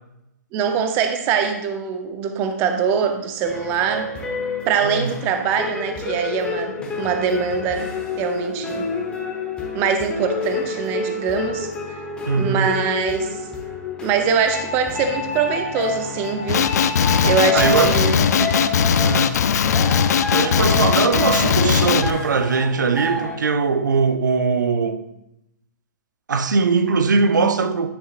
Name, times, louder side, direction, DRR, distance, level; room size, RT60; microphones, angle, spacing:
voice 1, 0.5-4.1 4.7-7.9 8.2-8.9 9.7-11.7 12.4-13.3 14.0-16.7 17.2-18.1, right 6 dB, 20° right, 0.6 m, -23 dB
sound 1, 3.4-23.4, left 3 dB, 10° left, 1.0 m, -29 dB
voice 2, 4.8-5.2 12.3-12.7 17.5-18.6 19.0-19.3 20.3-25.1 26.3-27.9, right 4 dB, 80° right, 0.7 m, -21 dB
Male speech man speaking, 16.5-22.1, left 7 dB, 60° left, 0.4 m, -19 dB
9.9 x 5.9 x 2.5 m
hypercardioid pair, 155°, 10 cm